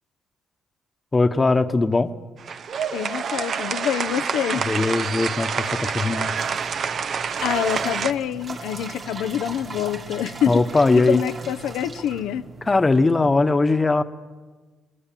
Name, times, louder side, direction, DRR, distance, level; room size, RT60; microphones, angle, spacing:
voice 1, 1.1-2.1 4.6-6.4 10.5-11.2 12.6-14.0, left 3 dB, 25° left, 1.2 m, -20 dB
sound 1, 2.4-8.1, right 6 dB, 55° right, 1.0 m, -27 dB
voice 2, 2.9-4.7 7.4-10.6 10.9-12.4, left 10 dB, 90° left, 0.7 m, -26 dB
sound 2, 6.4-13.3, right 4 dB, 40° right, 1.3 m, -38 dB
27.5 x 20.0 x 7.6 m
cardioid pair, 90°, 0 cm